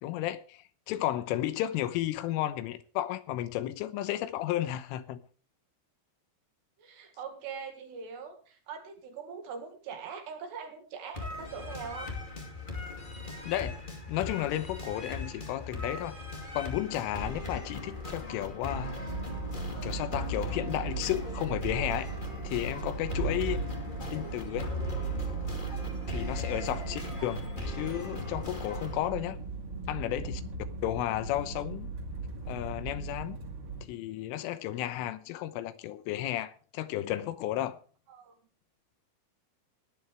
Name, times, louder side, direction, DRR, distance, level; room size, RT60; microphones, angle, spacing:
voice 1, 0.0-5.2 13.5-13.8 14.1-16.2 16.6-19.0 19.8-22.1 22.4-23.6 24.1-24.7 26.1-29.4 29.9-30.4 30.8-31.9 32.5-33.4 33.9-37.8, left 13 dB, 90° left, 3.5 m, -33 dB
voice 2, 6.8-12.1 27.4-27.5 38.1-38.3, right 6 dB, 65° right, 3.9 m, -42 dB
sound 1, 11.1-29.1, left 2 dB, 35° left, 0.7 m, -39 dB
sound 2, 19.0-33.8, right 4 dB, 35° right, 2.3 m, -37 dB
19.0 x 11.0 x 3.4 m
omnidirectional pair, 5.6 m